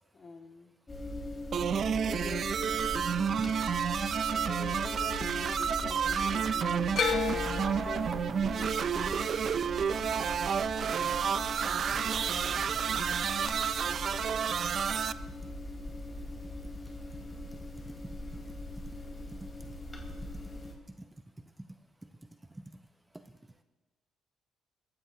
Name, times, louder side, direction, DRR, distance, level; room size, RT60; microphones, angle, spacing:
voice 1, 0.1-0.7 2.1-3.2 4.3-6.9 7.7-9.5 10.9-11.2 11.8-12.5 12.8-13.2, left 3 dB, 40° left, 2 dB, 2.1 m, -47 dB
sound 1, 0.9-20.7, left 1 dB, 25° left, 4.0 m, -40 dB
sound 2, 1.5-15.1, right 7 dB, 55° right, 0.4 m, -30 dB
sound 3, 6.9-11.1 11.4-12.1 13.5-13.6, left 7 dB, 60° left, 1.2 m, -35 dB
voice 2, 12.6-13.0 13.8-14.0 15.0-15.5 15.9-23.6, right 1 dB, 10° right, 7 dB, 0.7 m, -52 dB
20.5 x 15.5 x 2.9 m, 1.3 s
cardioid pair, 90°, 0 cm